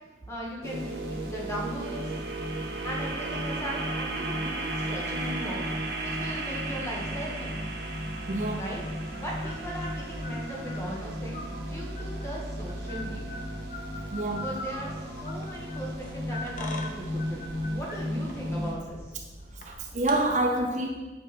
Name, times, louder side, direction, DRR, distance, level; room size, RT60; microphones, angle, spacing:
voice 1, 0.3-2.2 2.8-7.6 8.6-8.8 9.1-13.4 14.3-19.1, equal, 15° left, -3 dB, 1.3 m, -38 dB
sound 1, 0.6-18.7, right 1 dB, 75° right, 1.2 m, -34 dB
voice 2, 8.3-8.6 14.1-14.5 19.5-20.9, right 1 dB, 45° right, 2 dB, 0.6 m, -27 dB
sound 2, 8.4-20.2, left 2 dB, 45° left, 0.8 m, -43 dB
7.8 x 5.0 x 4.2 m, 1.2 s
head